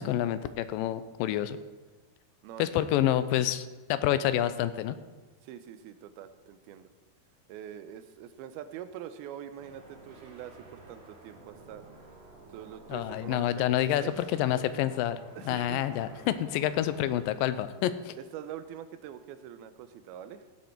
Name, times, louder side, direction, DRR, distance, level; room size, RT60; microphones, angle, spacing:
voice 1, 0.0-1.6 2.6-5.0 12.9-15.2 15.5-18.1, left 12 dB, 80° left, 12 dB, 2.2 m, -28 dB
voice 2, 2.4-2.9 5.4-6.9 7.5-11.8 12.5-14.2 15.4-15.9 16.7-17.1 18.2-20.4, right 10 dB, 90° right, 11 dB, 2.6 m, -44 dB
sound 1, 9.6-17.6, right 3 dB, 55° right, 3.7 m, -52 dB
16.5 x 8.5 x 4.4 m, 1.3 s
omnidirectional pair, 4.3 m